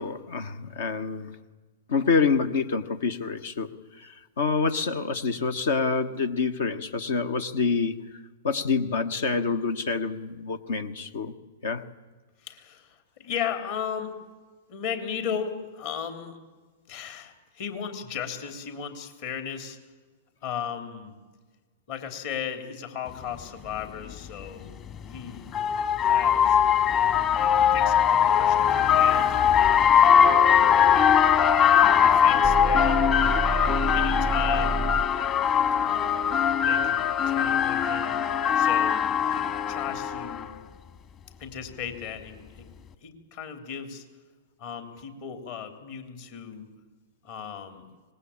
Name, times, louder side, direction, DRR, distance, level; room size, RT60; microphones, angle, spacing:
voice 1, 0.0-1.3 1.9-3.7 4.0-8.2 8.4-11.3 11.6-11.8, left 5 dB, 70° left, 9 dB, 1.3 m, -27 dB
voice 2, 12.4-14.1 14.7-16.4 16.9-19.8 20.4-21.2 21.9-24.7 25.1-25.5 26.0-26.6 27.5-29.5 30.0-30.8 32.0-33.0 33.9-34.9 35.8-38.2 38.5-40.5 41.4-42.7 43.0-44.0 44.6-46.7 47.2-47.8, left 8 dB, 55° left, 6 dB, 3.4 m, -36 dB
sound 1, 23.3-23.4 24.9-40.5, left 8 dB, 35° left, 1.9 m, -21 dB
sound 2, 32.4-35.2, right 4 dB, ahead, 0.7 m, -29 dB
25.0 x 20.5 x 8.8 m, 1.3 s
hypercardioid pair, 110°, 0 cm